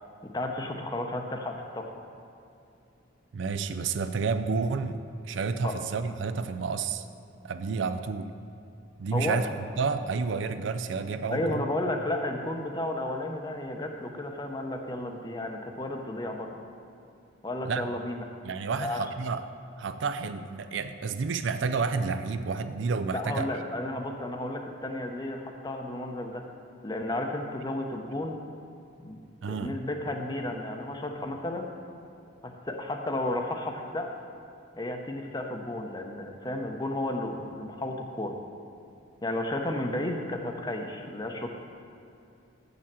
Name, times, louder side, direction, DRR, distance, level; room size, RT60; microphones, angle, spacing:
voice 1, 0.3-1.9 5.6-5.8 9.1-9.4 11.3-16.5 17.4-18.2 18.8-19.0 23.1-26.4 26.8-28.4 29.0-29.2 29.5-31.7 32.4-34.1 34.8-38.4 39.2-41.5, left 1 dB, 20° left, 3 dB, 0.7 m, -33 dB
voice 2, 3.3-5.0 5.2-7.1 7.4-8.3 9.0-9.5 9.8-11.6 17.6-17.9 18.4-19.4 19.8-23.5 29.4-29.7, right 4 dB, 70° right, 10 dB, 0.4 m, -30 dB
7.1 x 6.7 x 7.4 m, 2.6 s
head